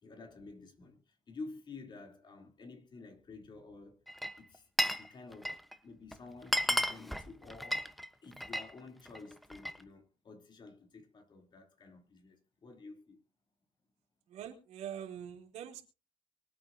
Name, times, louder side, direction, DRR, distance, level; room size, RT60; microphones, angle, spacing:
voice 1, 0.0-4.0 4.4-5.6 5.8-7.9 8.2-13.2, left 3 dB, 45° left, 3.4 m, -51 dB
Glass, 4.1-5.1 5.3-5.8 6.1-6.2 6.4-8.7 9.1-9.8, equal, ahead, 1.1 m, -33 dB
voice 2, 14.3-15.8, right 9 dB, 90° right, 3.5 m, -44 dB
24.0 x 9.0 x 2.8 m
cardioid pair, 115°, 11 cm